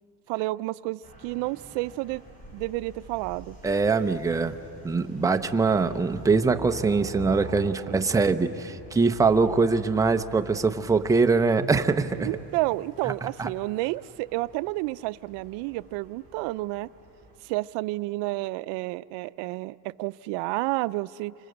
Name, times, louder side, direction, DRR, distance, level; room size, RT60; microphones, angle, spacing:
voice 1, 0.3-2.2 2.5-3.6 12.2-16.9 17.4-21.3, right 20 dB, 85° right, 17 dB, 0.5 m, -30 dB
sound 1, 1.0-17.4, right 2 dB, 20° left, 4.7 m, -46 dB
voice 2, 3.6-4.6 4.8-12.3 13.2-13.5, right 4 dB, 10° right, 6 dB, 0.6 m, -23 dB
28.0 x 26.0 x 7.9 m, 2.8 s
cardioid pair, 140°, 40 cm